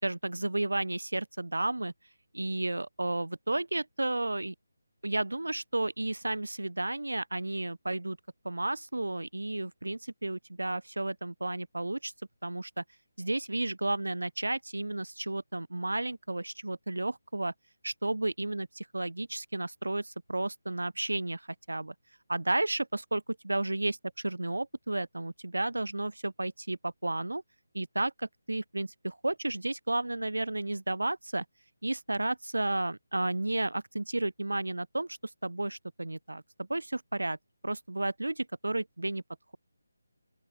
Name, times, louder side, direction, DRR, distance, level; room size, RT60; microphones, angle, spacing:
voice 1, 0.0-1.9 2.3-4.5 5.0-8.2 8.4-12.1 12.4-12.8 13.2-17.5 17.8-21.9 22.3-27.4 27.7-31.4 31.8-35.2 35.4-37.4 37.6-38.3 38.6-39.2, right 2 dB, 85° right, 4.4 m, -32 dB
open air
figure-of-eight pair, 160°, 0 cm